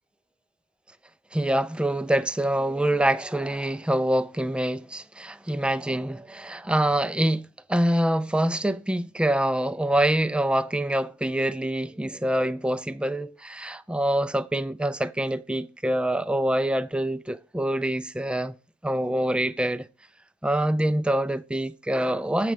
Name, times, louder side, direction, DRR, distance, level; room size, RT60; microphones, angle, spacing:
voice 1, 1.3-18.6 18.8-19.9 20.4-22.5, right 1 dB, 5° right, 0.3 m, -25 dB
7.7 x 7.1 x 3.3 m
head